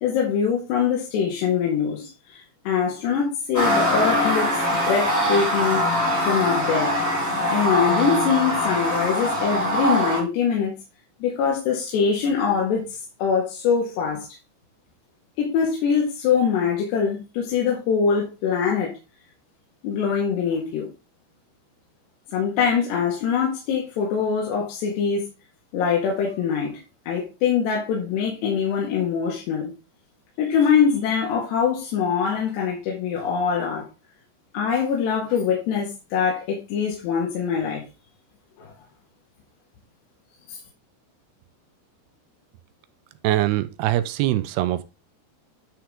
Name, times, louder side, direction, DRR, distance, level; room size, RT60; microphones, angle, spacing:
voice 1, 0.0-5.8 6.2-6.9 7.5-10.7 11.2-14.3 15.4-18.9 19.8-20.9 22.3-25.3 25.7-26.8 27.1-29.7 30.4-33.9 34.5-37.8 38.6-38.7 40.5-40.6, left 6 dB, 75° left, 3.9 m, -23 dB
sound 1, 3.5-10.2, equal, 5° left, 1.7 m, -22 dB
voice 2, 43.2-44.9, right 14 dB, 80° right, 2.5 m, -23 dB
10.0 x 5.8 x 3.7 m
omnidirectional pair, 5.0 m